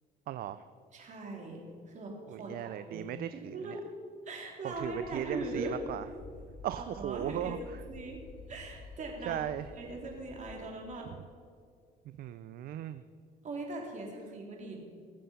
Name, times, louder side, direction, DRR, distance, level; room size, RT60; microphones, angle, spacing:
voice 1, 0.3-0.6 2.3-3.8 4.6-6.0 6.6-7.6 9.3-9.7 12.2-13.0, right 11 dB, 60° right, 12 dB, 0.5 m, -37 dB
voice 2, 0.9-1.6 1.9-3.8 4.3-5.8 6.8-7.6 7.9-8.2 8.5-9.4 9.8-11.1 13.4-14.8, right 2 dB, 45° right, 0 dB, 3.7 m, -40 dB
sound 1, 4.7-10.6, left 2 dB, 55° left, 3.9 m, -50 dB
20.0 x 7.7 x 5.7 m, 2.2 s
cardioid pair, 110°, 17 cm